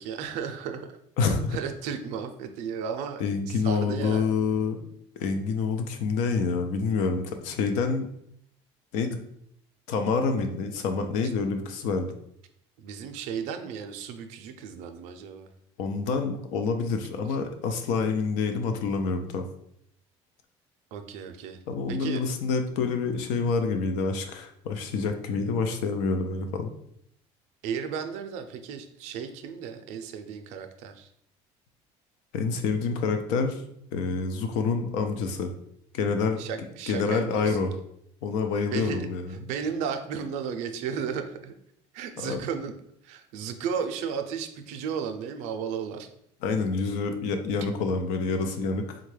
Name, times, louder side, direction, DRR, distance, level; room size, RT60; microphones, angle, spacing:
voice 1, 0.0-1.0 1.3-4.3 11.2-11.3 12.8-15.5 20.9-21.6 21.9-22.2 27.6-31.1 36.4-37.6 38.7-41.5 41.9-42.7 43.0-46.1, right 7 dB, 75° right, 7 dB, 0.4 m, -34 dB
voice 2, 1.2-1.6 3.2-4.8 5.2-8.1 8.9-9.2 9.9-12.1 15.8-19.5 21.7-26.7 32.3-33.6 33.9-35.5 35.9-36.4 36.9-37.7 38.2-39.4 42.2-42.4 46.4-49.0, left 4 dB, 90° left, 6 dB, 0.5 m, -27 dB
3.7 x 2.2 x 3.2 m, 0.72 s
cardioid pair, 165°, 12 cm